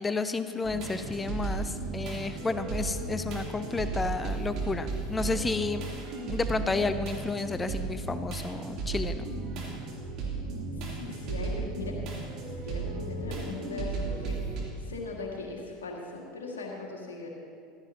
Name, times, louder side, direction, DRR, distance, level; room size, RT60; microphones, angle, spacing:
voice 1, 0.0-5.9 6.3-9.2, left 3 dB, 15° left, 11 dB, 0.5 m, -31 dB
sound 1, 0.6-14.6, right 3 dB, 50° right, 3.2 m, -35 dB
voice 2, 10.9-12.0 12.5-14.4 14.8-17.3, left 3 dB, 75° left, -2 dB, 2.0 m, -39 dB
15.5 x 13.0 x 2.9 m, 2.4 s
figure-of-eight pair, 75°, 0 cm